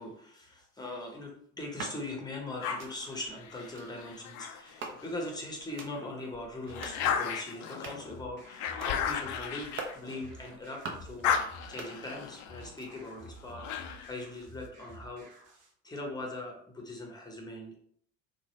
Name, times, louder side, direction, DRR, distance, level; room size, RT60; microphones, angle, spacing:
voice 1, 0.0-11.3 11.7-15.3 15.8-17.7, left 2 dB, 10° left, 0 dB, 0.9 m, -41 dB
sound 1, 1.6-2.0 2.6-2.9 3.6-3.9 4.6-5.3 5.6-5.9 6.6-7.0 7.6-8.1 8.6-9.0 9.6-10.0 10.6-11.1 11.6-12.3 12.6-13.1, right 3 dB, 30° right, 0.7 m, -44 dB
sound 2, 2.6-5.3 5.8-10.6 10.9-14.2, left 8 dB, 50° left, 0.5 m, -35 dB
sound 3, 6.7-15.7, right 1 dB, 60° right, 1.0 m, -52 dB
2.9 x 2.2 x 3.0 m, 0.62 s
figure-of-eight pair, 65°, 38 cm